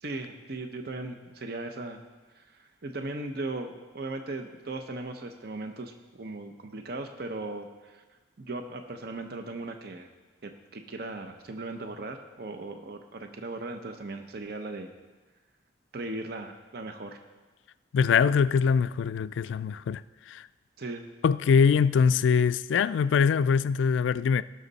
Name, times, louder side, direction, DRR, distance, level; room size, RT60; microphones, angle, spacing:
voice 1, 0.0-2.0 2.4-8.0 8.4-10.1 10.4-14.9 15.9-17.2 20.8-21.0, right 2 dB, 55° right, 0.7 m, -38 dB
voice 2, 17.9-20.0 20.3-20.4 21.2-24.4, left 6 dB, 85° left, 0.3 m, -23 dB
18.0 x 6.4 x 4.1 m
head